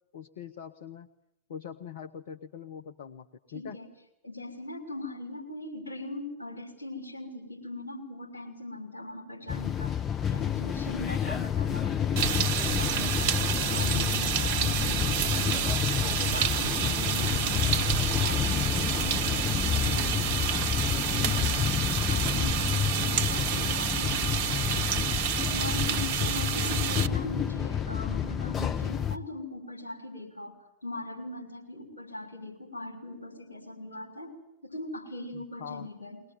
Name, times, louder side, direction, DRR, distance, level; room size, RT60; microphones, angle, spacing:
voice 1, 0.1-1.1 1.5-3.8 19.3-19.5 19.8-20.2 35.3-35.9, left 8 dB, 60° left, 8 dB, 1.0 m, -43 dB
voice 2, 3.5-3.9 4.2-10.0 10.3-17.9 18.2-20.7 20.9-21.8 22.1-34.3 34.6-36.2, left 2 dB, 80° left, 1 dB, 5.9 m, -40 dB
sound 1, 9.5-29.2, left 8 dB, 25° left, 1.0 m, -29 dB
sound 2, 12.2-27.1, right 9 dB, 45° right, 0.9 m, -29 dB
22.0 x 20.0 x 9.7 m, 0.85 s
figure-of-eight pair, 90°, 0 cm